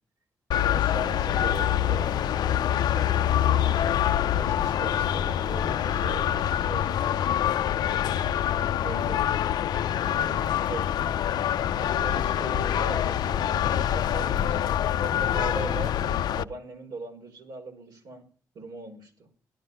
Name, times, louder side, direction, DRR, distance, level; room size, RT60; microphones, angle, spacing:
sound 1, 0.5-16.4, left 10 dB, 80° left, 0.6 m, -25 dB
voice 1, 0.6-3.3 4.2-7.2 8.7-9.2 10.0-10.9 11.8-15.9 16.4-18.2 18.6-19.3, right 2 dB, 75° right, 2 dB, 5.4 m, -40 dB
16.0 x 11.5 x 5.5 m, 0.42 s
cardioid pair, 65°, 7 cm